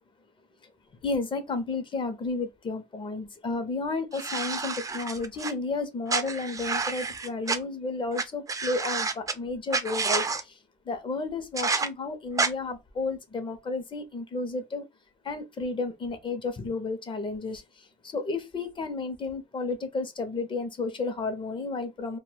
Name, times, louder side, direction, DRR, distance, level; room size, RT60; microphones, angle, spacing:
voice 1, 1.0-10.2 10.9-14.9 15.2-17.6 18.1-22.2, left 3 dB, 30° left, 0.6 m, -32 dB
sound 1, 4.1-5.5 6.1-7.6 8.2-8.3 8.5-9.3 9.7-10.4 11.6-11.9 12.4-12.5, right 4 dB, 20° right, 0.4 m, -29 dB
2.2 x 2.1 x 3.2 m
cardioid pair, 110°, 17 cm